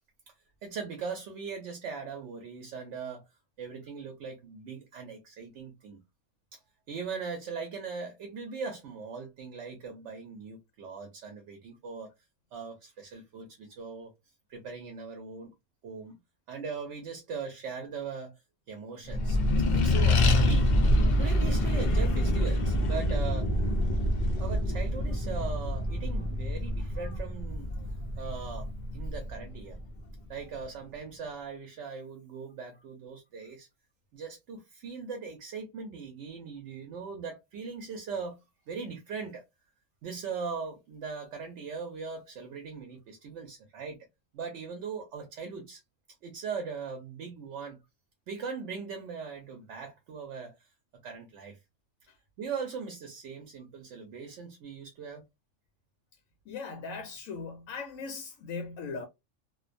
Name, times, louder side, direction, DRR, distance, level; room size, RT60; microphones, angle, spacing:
voice 1, 0.6-3.2 3.6-6.0 6.5-6.6 6.9-12.1 12.5-14.1 14.5-15.5 15.8-16.2 16.5-18.4 18.7-19.4 19.7-20.7 21.2-23.5 24.4-27.7 28.2-29.8 30.3-33.7 34.1-38.4 38.7-39.4 40.0-44.0 44.3-45.8 46.2-47.8 48.3-50.7 51.0-51.6 52.4-55.2, right 5 dB, 70° right, 0.9 m, -40 dB
Accelerating revving vroom, 19.1-30.0, left 1 dB, 55° left, 0.5 m, -26 dB
voice 2, 56.5-59.1, left 4 dB, 85° left, 1.0 m, -39 dB
2.5 x 2.2 x 2.4 m
omnidirectional pair, 1.3 m